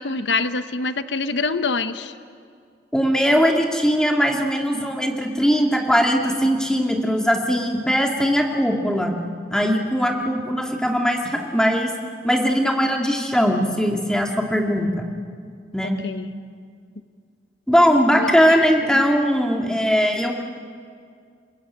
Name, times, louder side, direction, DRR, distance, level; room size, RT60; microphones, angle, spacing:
voice 1, 0.0-2.1 15.8-16.3 18.1-18.3 18.6-18.7 18.9-19.0, left 3 dB, 85° left, 11 dB, 1.0 m, -25 dB
voice 2, 2.9-9.1 9.5-11.9 12.2-15.1 15.7-16.0 17.7-20.3, equal, 5° left, 1 dB, 2.2 m, -20 dB
30.0 x 20.5 x 8.6 m, 2.2 s
head